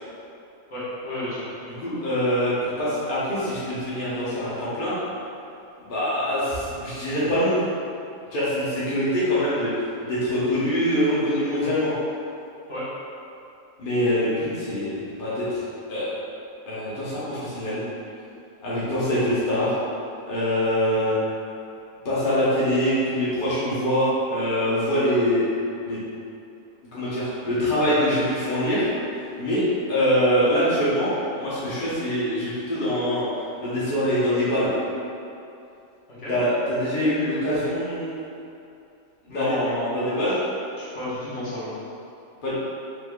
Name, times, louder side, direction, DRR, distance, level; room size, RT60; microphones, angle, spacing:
voice 1, 0.7-1.4 12.7-12.9 36.1-36.3 39.3-40.0 40.2-40.4 40.8-41.7, left 1 dB, 65° left, -11 dB, 1.6 m, -31 dB
voice 2, 1.8-5.0 5.8-7.6 8.3-9.7 10.0-11.9 13.8-15.6 15.9-16.1 16.7-17.8 18.6-19.7 20.2-21.1 22.0-25.4 25.8-26.0 26.9-28.9 29.4-33.2 33.6-34.7 36.3-38.2 39.3-39.6 39.8-40.4 42.4-42.5, equal, 45° left, -10 dB, 1.0 m, -24 dB
4.7 x 3.7 x 2.3 m, 2.7 s
omnidirectional pair, 1.3 m